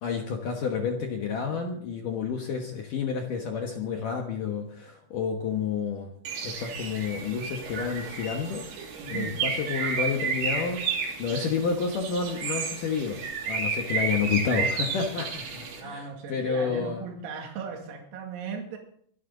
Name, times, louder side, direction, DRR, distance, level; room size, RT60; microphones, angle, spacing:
voice 1, 0.0-6.1 6.4-17.0, left 6 dB, 75° left, 2 dB, 1.9 m, -30 dB
Bird, 6.3-15.8, right 5 dB, 65° right, 5.1 m, -32 dB
voice 2, 9.0-9.4 15.8-18.8, right 6 dB, 85° right, 1 dB, 5.0 m, -37 dB
24.5 x 11.0 x 3.9 m, 0.62 s
omnidirectional pair, 5.9 m